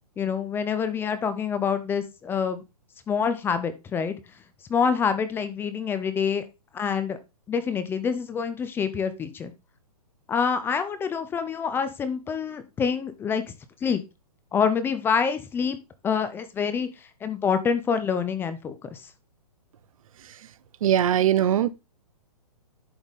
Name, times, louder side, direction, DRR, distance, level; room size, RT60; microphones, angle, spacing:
voice 1, 0.2-2.6 3.1-4.1 4.7-6.4 6.7-7.2 7.5-9.5 10.3-13.5 13.8-14.0 14.5-15.8 16.0-16.9 17.2-19.1, left 6 dB, 10° left, 0.5 m, -26 dB
voice 2, 20.8-21.7, right 11 dB, 60° right, 0.6 m, -20 dB
11.0 x 4.0 x 3.5 m
hypercardioid pair, 140°, 20 cm